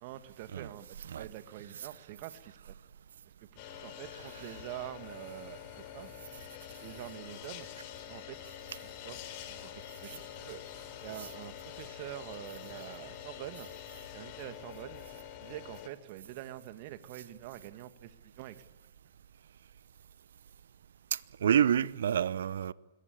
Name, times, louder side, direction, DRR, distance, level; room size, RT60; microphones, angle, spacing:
voice 1, 0.0-2.8 3.5-6.1 6.8-7.7 8.1-8.5 8.8-9.2 9.5-10.6 11.0-13.7 14.1-15.1 15.4-18.6, right 14 dB, 45° right, 1.9 m, -46 dB
sound 1, 3.6-15.9, left 11 dB, 40° left, 4.1 m, -46 dB
voice 2, 21.1-22.7, right 9 dB, 65° right, 0.8 m, -28 dB
26.5 x 22.0 x 8.5 m
figure-of-eight pair, 115°, 0 cm